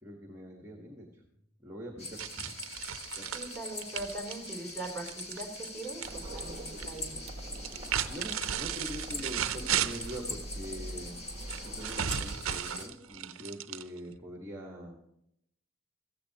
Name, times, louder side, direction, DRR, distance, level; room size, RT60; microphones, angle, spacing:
voice 1, 0.0-1.2 1.6-2.5 3.2-3.3 7.9-11.2 11.5-15.0, equal, 15° right, 1 dB, 1.5 m, -43 dB
sound 1, 2.0-12.9, left 2 dB, 30° left, 1.9 m, -43 dB
sound 2, 2.2-6.1 6.4-7.0 7.5-10.2 11.5-14.2, right 9 dB, 75° right, 0.6 m, -35 dB
voice 2, 3.3-7.2, right 2 dB, 5° left, 0 dB, 3.4 m, -41 dB
sound 3, 6.0-12.0, right 1 dB, 30° right, 1.1 m, -44 dB
15.5 x 15.0 x 2.9 m, 0.77 s
head